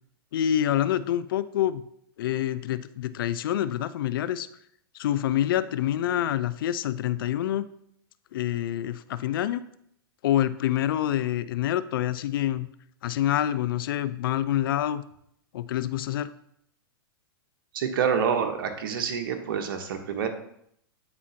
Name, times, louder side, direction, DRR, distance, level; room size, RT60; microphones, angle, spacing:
voice 1, 0.3-1.9 2.2-4.5 4.9-7.7 8.3-9.6 10.2-12.7 13.0-15.0 15.5-16.3, left 11 dB, 65° left, 14 dB, 0.4 m, -26 dB
voice 2, 17.7-20.3, right 7 dB, 65° right, 6 dB, 1.0 m, -27 dB
8.7 x 4.1 x 2.8 m, 0.72 s
hypercardioid pair, 110°, 12 cm